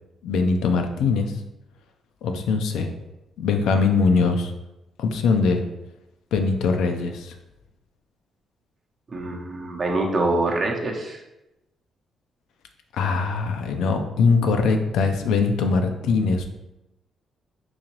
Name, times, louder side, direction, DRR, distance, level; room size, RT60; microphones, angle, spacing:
voice 1, 0.2-1.3 2.2-2.9 3.4-4.5 5.0-5.6 6.3-7.4 12.9-16.5, left 4 dB, 85° left, 5 dB, 0.4 m, -22 dB
voice 2, 9.1-11.2, right 2 dB, 40° right, 1 dB, 0.7 m, -25 dB
3.9 x 2.8 x 3.0 m, 0.93 s
cardioid pair, 90°, 0 cm